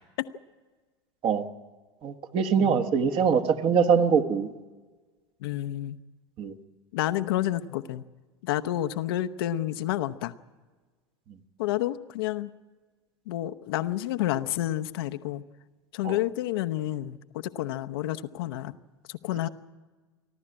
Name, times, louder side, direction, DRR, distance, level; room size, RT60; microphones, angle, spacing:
voice 1, 2.0-4.5 6.4-6.5 16.0-16.2, right 6 dB, 40° right, 7 dB, 1.4 m, -23 dB
voice 2, 5.4-6.0 6.9-8.0 8.4-10.3 11.6-12.5 13.3-15.4 15.9-18.8 19.1-19.5, left 14 dB, 60° left, 10 dB, 0.8 m, -30 dB
30.0 x 12.0 x 8.8 m, 1.3 s
figure-of-eight pair, 80°, 14 cm